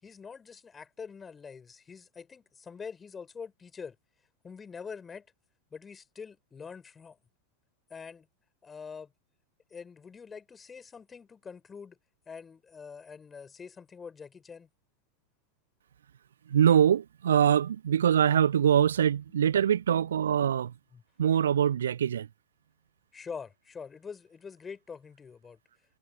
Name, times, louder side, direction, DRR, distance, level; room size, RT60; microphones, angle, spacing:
voice 1, 0.0-4.0 4.4-5.3 5.7-7.2 7.9-8.3 8.6-9.1 9.7-12.0 12.3-14.7 19.9-20.1 20.9-21.0 23.1-25.6, left 6 dB, 15° left, 6.7 m, -45 dB
voice 2, 16.5-20.7 21.2-22.3, right 9 dB, 65° right, 0.9 m, -23 dB
figure-of-eight pair, 90°, 0 cm